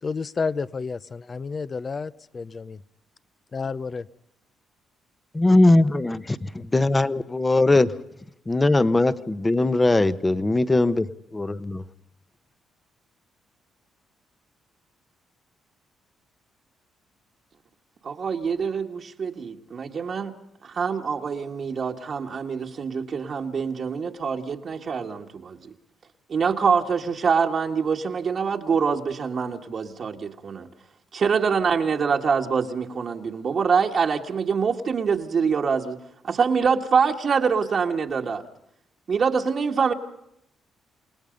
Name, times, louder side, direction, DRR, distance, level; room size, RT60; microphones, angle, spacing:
voice 1, 0.0-2.8 3.5-4.1, left 4 dB, 35° left, 16 dB, 0.8 m, -30 dB
voice 2, 5.3-6.2 6.7-7.9 8.5-11.1 11.3-11.8, left 2 dB, 20° left, 14 dB, 1.1 m, -20 dB
voice 3, 18.0-20.3 20.6-25.7 26.3-30.7 31.1-36.0 36.2-38.4 39.1-39.9, right 6 dB, 50° right, 2 dB, 1.7 m, -25 dB
29.0 x 18.5 x 5.3 m, 0.79 s
cardioid pair, 90°, 0 cm